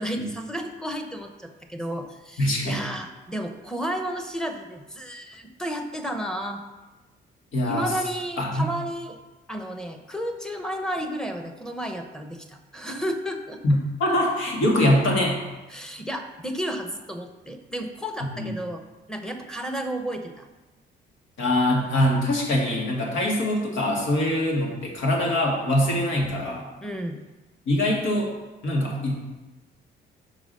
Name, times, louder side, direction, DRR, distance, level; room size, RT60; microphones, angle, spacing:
voice 1, 0.0-6.6 7.6-9.2 9.5-13.6 15.7-18.8 19.1-20.5 26.8-27.2, equal, 5° left, 4 dB, 0.9 m, -32 dB
voice 2, 2.4-2.8 7.5-7.9 8.4-8.7 13.6-15.4 18.4-18.5 21.4-26.7 27.7-28.3 28.6-29.1, left 1 dB, 75° left, -2 dB, 1.9 m, -23 dB
6.1 x 4.8 x 5.4 m, 1.1 s
cardioid pair, 90°, 20 cm